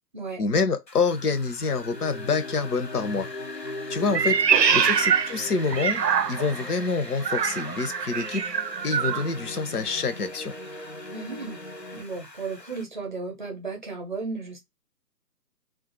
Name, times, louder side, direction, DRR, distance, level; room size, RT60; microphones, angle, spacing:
voice 1, 0.4-3.3 3.9-4.4 4.7-6.0 6.3-8.5 8.8-10.5, left 4 dB, 65° left, 0.8 m, -26 dB
Wind, 0.9-12.8, left 2 dB, 90° left, 1.3 m, -44 dB
sound 1, 1.8-12.0, left 1 dB, 45° left, 0.4 m, -40 dB
Meow, 4.1-6.6 7.2-9.3, right 7 dB, 80° right, 0.6 m, -24 dB
voice 2, 4.4-4.9 11.1-11.6 11.9-14.6, right 4 dB, 30° right, 0.7 m, -35 dB
2.4 x 2.4 x 3.9 m
figure-of-eight pair, 145°, 49 cm